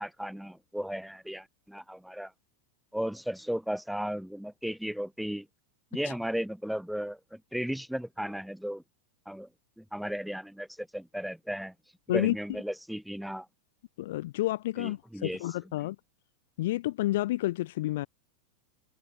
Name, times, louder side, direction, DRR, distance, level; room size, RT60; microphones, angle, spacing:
voice 1, 0.0-2.3 2.9-5.5 5.9-8.8 9.3-9.5 9.8-11.7 12.1-13.5 14.8-15.7, equal, ahead, 2.4 m, -35 dB
voice 2, 14.0-16.0 16.6-18.1, left 16 dB, 55° left, 0.9 m, -29 dB
figure-of-eight pair, 90°, 0 cm